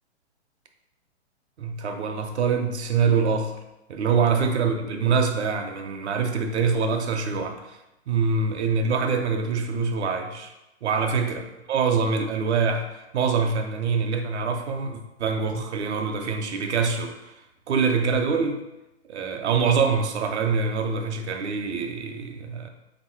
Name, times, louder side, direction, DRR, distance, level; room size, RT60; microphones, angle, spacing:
voice 1, 1.6-3.6 3.9-7.8 8.1-10.5 10.8-12.9 13.1-17.2 17.7-18.6 19.1-22.7, right 5 dB, 75° right, 4 dB, 0.8 m, -24 dB
3.8 x 3.0 x 4.4 m, 0.95 s
hypercardioid pair, 145°, 34 cm